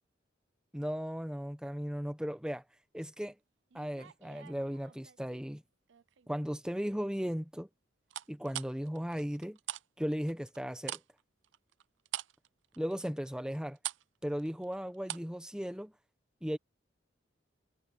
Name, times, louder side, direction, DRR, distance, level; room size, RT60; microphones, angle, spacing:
voice 1, 0.7-2.6 2.9-3.3 3.7-5.6 6.3-7.7 8.3-9.6 10.0-11.0 12.8-13.8 14.2-15.9 16.4-16.6, equal, 5° right, 1.0 m, -36 dB
sound 1, 3.7-5.4 5.9-6.3 8.1-9.9 10.1-15.4 15.6-15.8, right 12 dB, 75° right, 0.5 m, -43 dB
head